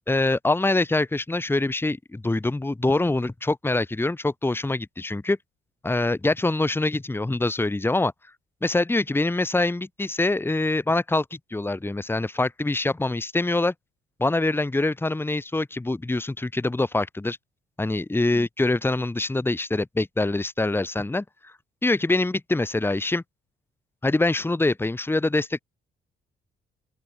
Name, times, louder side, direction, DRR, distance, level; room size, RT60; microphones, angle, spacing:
voice 1, 0.1-5.4 5.8-8.1 8.6-13.7 14.2-17.4 17.8-21.5 21.8-23.2 24.0-25.6, left 2 dB, 10° left, 1.3 m, -24 dB
open air
cardioid pair, 90°, 20 cm